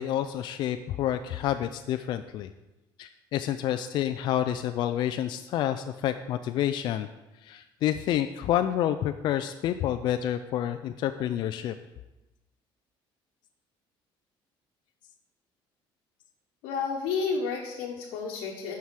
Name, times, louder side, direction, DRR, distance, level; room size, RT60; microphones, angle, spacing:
voice 1, 0.0-2.5 3.0-7.1 7.4-11.7, left 11 dB, 55° left, 9 dB, 0.4 m, -29 dB
voice 2, 16.6-18.8, left 5 dB, 90° left, -2 dB, 1.2 m, -31 dB
9.4 x 5.7 x 4.7 m, 0.99 s
cardioid pair, 155°, 9 cm